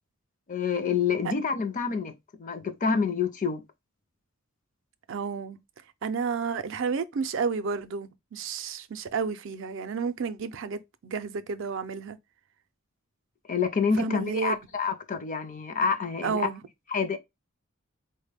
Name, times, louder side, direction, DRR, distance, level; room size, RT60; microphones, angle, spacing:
voice 1, 0.5-2.1 2.4-3.6 13.5-16.5 16.9-17.2, left 5 dB, 35° left, 0.5 m, -27 dB
voice 2, 5.1-5.6 6.0-12.2 14.0-14.6 16.2-16.6, right 5 dB, 60° right, 0.4 m, -31 dB
4.1 x 2.1 x 3.3 m
head